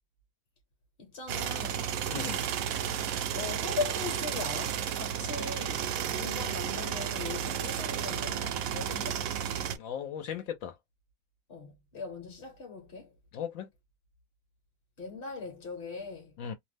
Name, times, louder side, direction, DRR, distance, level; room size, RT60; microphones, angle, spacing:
voice 1, 1.0-1.9 3.3-9.2 11.5-13.1 15.0-16.3, left 4 dB, 50° left, 1.0 m, -40 dB
sound 1, 1.3-9.8, right 9 dB, 85° right, 1.0 m, -32 dB
voice 2, 2.1-2.5 9.7-10.8 13.3-13.7 16.4-16.5, left 8 dB, 80° left, 1.0 m, -37 dB
2.7 x 2.1 x 3.3 m
omnidirectional pair, 1.4 m